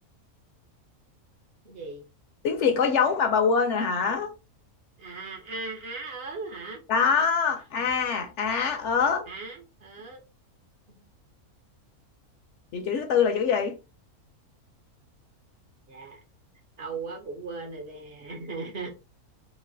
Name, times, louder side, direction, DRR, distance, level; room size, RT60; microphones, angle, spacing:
voice 1, 1.6-2.0 5.0-6.8 7.7-7.8 9.3-10.2 10.9-11.0 15.9-16.2 16.8-18.9, right 3 dB, 55° right, 0.8 m, -38 dB
voice 2, 2.4-4.3 6.9-9.3 12.7-13.8, left 6 dB, 65° left, 0.8 m, -24 dB
3.1 x 2.4 x 2.6 m
omnidirectional pair, 1.5 m